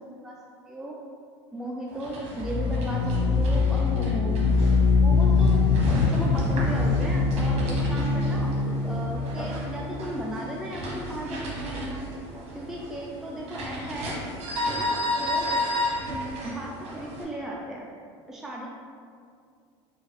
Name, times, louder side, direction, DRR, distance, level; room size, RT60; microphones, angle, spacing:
voice 1, 1.5-4.4 5.0-12.0 12.5-14.2 14.7-15.5 16.4-17.9 18.3-18.7, right 1 dB, 5° right, -3 dB, 0.4 m, -36 dB
sound 1, 1.9-17.2, left 1 dB, 50° right, 1.0 m, -33 dB
sound 2, 2.3-11.0, left 4 dB, 55° left, 0.8 m, -23 dB
3.9 x 2.4 x 3.3 m, 2.2 s
hypercardioid pair, 80°, 14 cm